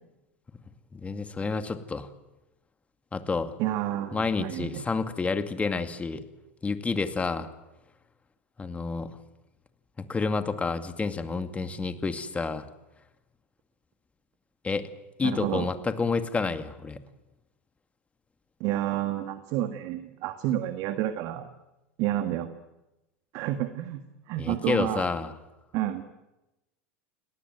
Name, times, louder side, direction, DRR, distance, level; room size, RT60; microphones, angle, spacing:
voice 1, 0.9-2.1 3.1-3.5 4.1-6.2 6.6-7.5 8.6-9.1 10.0-12.6 14.6-14.8 15.2-17.0 24.4-25.3, left 4 dB, 20° left, 9 dB, 2.3 m, -29 dB
voice 2, 3.6-4.8 15.2-15.7 18.6-21.5 22.0-22.5 23.3-25.1 25.7-26.0, right 13 dB, 55° right, 9 dB, 1.8 m, -30 dB
29.0 x 18.5 x 9.3 m, 0.99 s
hypercardioid pair, 85°, 7 cm